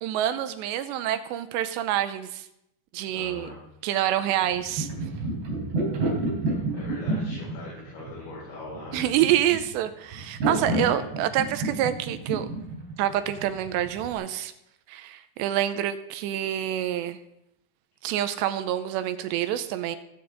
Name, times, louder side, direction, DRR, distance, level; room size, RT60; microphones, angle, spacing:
voice 1, 0.0-2.5 2.9-3.5 3.8-4.9 8.9-12.5 13.0-14.5 14.9-17.2 18.0-20.0, right 12 dB, 85° right, 10 dB, 2.8 m, -27 dB
voice 2, 3.1-3.6 6.7-9.1 10.6-11.1, left 2 dB, 85° left, -7 dB, 6.7 m, -41 dB
sound 1, 4.4-14.1, right 2 dB, 65° right, 5.5 m, -30 dB
23.0 x 8.8 x 3.9 m, 0.81 s
omnidirectional pair, 5.1 m